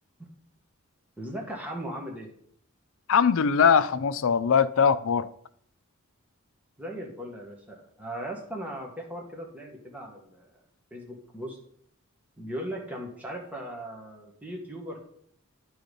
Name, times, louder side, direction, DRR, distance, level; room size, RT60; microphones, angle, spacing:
voice 1, 1.2-2.3 6.8-10.6 10.9-11.6 12.4-15.0, right 1 dB, 5° right, 1.5 m, -38 dB
voice 2, 3.1-5.3, left 6 dB, 65° left, 0.5 m, -21 dB
10.5 x 4.9 x 5.3 m
head